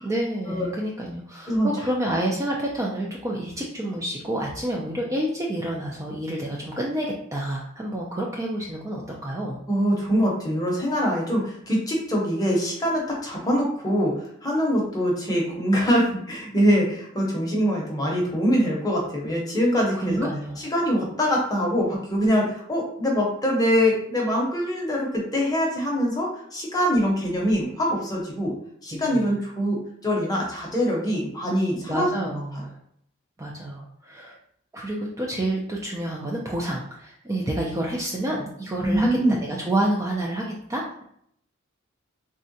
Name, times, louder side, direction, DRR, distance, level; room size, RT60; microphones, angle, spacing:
voice 1, 0.0-9.6 19.9-20.6 28.9-29.2 31.9-32.7 33.4-34.4 34.7-41.1, right 1 dB, 15° right, -2 dB, 0.3 m, -29 dB
voice 2, 9.7-14.1 14.4-20.3 20.6-28.5 28.8-29.8 30.0-32.1 38.8-39.4, equal, 20° left, -2 dB, 0.7 m, -23 dB
3.5 x 2.1 x 2.6 m, 0.68 s
head